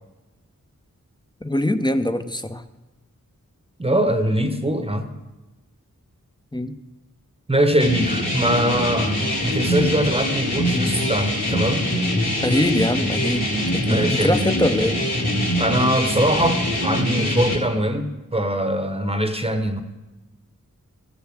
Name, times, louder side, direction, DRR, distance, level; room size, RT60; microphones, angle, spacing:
voice 1, 1.4-2.6 6.5-6.7 12.4-13.4 13.7-15.0, left 1 dB, 15° left, 9 dB, 0.7 m, -22 dB
voice 2, 3.8-5.1 7.5-11.9 13.8-14.5 15.6-19.8, right 1 dB, 20° right, 7 dB, 1.0 m, -22 dB
sound 1, 7.8-17.6, equal, 55° left, 3.0 m, -23 dB
14.5 x 7.0 x 6.2 m, 1.1 s
cardioid pair, 45°, 32 cm